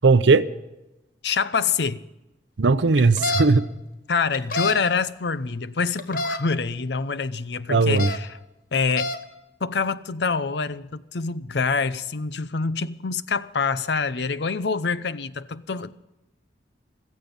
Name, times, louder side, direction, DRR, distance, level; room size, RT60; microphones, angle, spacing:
voice 1, 0.0-0.4 2.6-3.7 7.7-8.1, right 3 dB, 85° right, 0.6 m, -17 dB
voice 2, 1.2-2.0 4.1-8.4 8.7-9.1 9.6-16.0, left 5 dB, 70° left, 0.7 m, -26 dB
sound 1, 3.0-3.4 4.3-4.8 6.0-6.4 7.8-8.2 8.7-9.2, left 2 dB, 50° left, 1.2 m, -27 dB
16.0 x 14.5 x 5.3 m
head